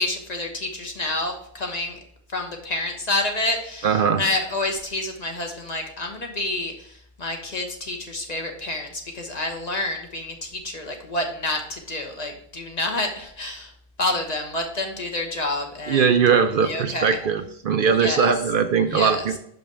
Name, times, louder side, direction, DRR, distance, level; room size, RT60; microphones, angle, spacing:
voice 1, 0.0-2.0 2.3-13.7 14.0-16.0 16.6-17.2 17.9-18.3 18.9-19.3, left 2 dB, 40° left, 2 dB, 1.1 m, -28 dB
voice 2, 3.8-4.2 15.9-19.4, right 6 dB, 65° right, 8 dB, 0.7 m, -20 dB
5.9 x 5.4 x 4.6 m, 0.67 s
omnidirectional pair, 1.1 m